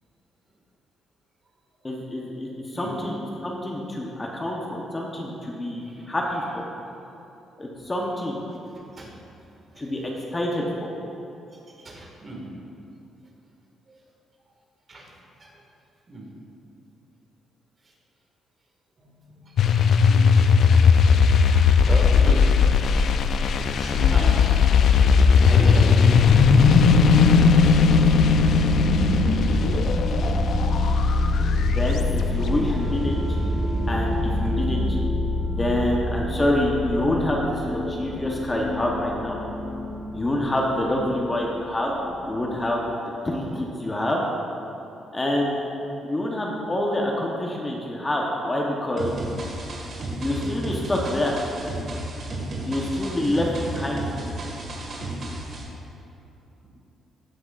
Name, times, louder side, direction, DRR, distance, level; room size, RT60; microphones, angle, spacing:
voice 1, 1.8-3.2 3.4-6.6 7.6-8.4 9.8-10.0 10.3-10.9 31.7-33.2 33.9-35.0 35.5-39.4 40.1-41.9 42.2-42.8 43.2-44.2 45.1-45.6 46.0-49.1 50.2-51.4 52.6-54.1, left 1 dB, 20° left, -2 dB, 1.0 m, -26 dB
voice 2, 5.8-6.2 8.7-9.2 9.5-9.9 11.5-12.4 13.9-14.0 14.9-15.6 16.1-16.3 17.8-17.9 19.0-20.3 21.8-22.6 22.8-23.1 23.5-26.5 26.8-26.9 30.0-30.1 32.4-32.7 35.7-36.1 40.9-41.0 47.8-48.2 53.2-53.4 56.6-56.7, right 1 dB, 35° right, -2 dB, 2.0 m, -37 dB
sound 1, 19.6-32.0, left 5 dB, 65° left, 0.4 m, -18 dB
sound 2, 26.0-42.8, left 1 dB, 5° right, 1.2 m, -26 dB
sound 3, 49.0-55.6, right 1 dB, 50° right, 1.9 m, -33 dB
15.0 x 6.2 x 2.5 m, 2.9 s
cardioid pair, 90°, 0 cm